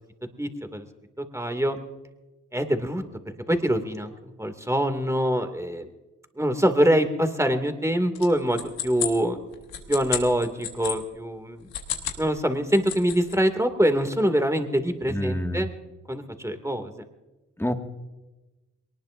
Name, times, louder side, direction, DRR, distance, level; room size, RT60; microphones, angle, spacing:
voice 1, 0.4-0.9 1.2-1.8 2.5-3.0 3.5-5.9 6.4-9.4 9.9-11.7 12.2-15.7 16.1-16.9, equal, 10° right, 7 dB, 2.5 m, -24 dB
sound 1, 8.2-11.0 11.6-12.2 12.6-13.4, left 9 dB, 85° left, 1.6 m, -32 dB
voice 2, 15.1-15.7 17.6-17.7, equal, 5° left, 4 dB, 2.0 m, -27 dB
22.5 x 19.5 x 2.7 m, 1.1 s
supercardioid pair, 40°, 34 cm